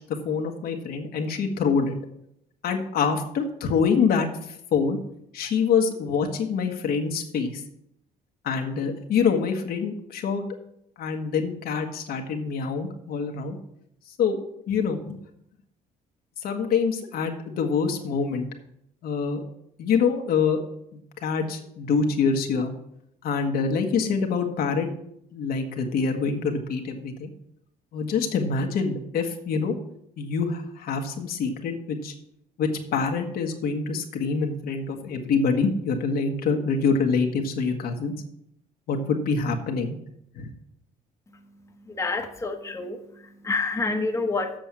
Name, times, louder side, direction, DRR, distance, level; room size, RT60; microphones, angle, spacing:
voice 1, 0.1-2.0 2.6-5.0 5.3-7.6 8.4-10.5 11.0-13.6 14.2-14.4 14.7-15.2 16.4-18.5 19.0-19.4 19.8-20.6 20.9-22.7 23.2-24.9 25.3-27.3 27.9-29.8 30.2-32.1 32.6-38.1 38.9-40.0 40.3-40.5, left 5 dB, 65° left, 3 dB, 1.5 m, -25 dB
voice 2, 42.0-43.0 43.4-44.5, left 3 dB, 15° left, 2 dB, 1.3 m, -27 dB
7.7 x 6.2 x 7.3 m, 0.75 s
cardioid pair, 110°, 17 cm